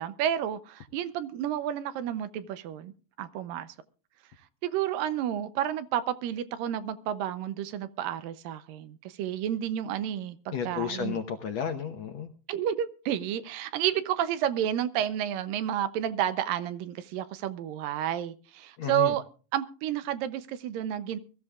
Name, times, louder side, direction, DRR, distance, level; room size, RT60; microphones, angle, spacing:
voice 1, 0.0-2.9 3.2-3.7 4.6-11.2 12.5-19.2 19.5-21.2, right 10 dB, 80° right, 2.4 m, -31 dB
voice 2, 10.5-12.3 18.8-19.1, left 7 dB, 65° left, 1.8 m, -32 dB
22.5 x 14.5 x 2.4 m
omnidirectional pair, 4.1 m